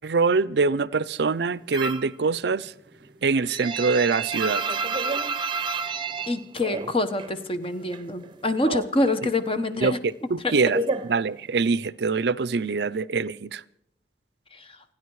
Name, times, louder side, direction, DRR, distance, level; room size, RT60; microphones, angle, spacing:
voice 1, 0.0-2.7 3.2-4.6 8.6-8.8 9.8-13.6, right 4 dB, 70° right, 0.5 m, -24 dB
sound 1, 1.7-2.2 2.5-7.4 7.6-8.7 9.0-11.8, right 4 dB, 30° right, 0.7 m, -30 dB
voice 2, 6.3-10.0 10.4-10.6 14.5-14.8, left 2 dB, 30° left, 1.1 m, -26 dB
28.5 x 10.0 x 4.8 m
head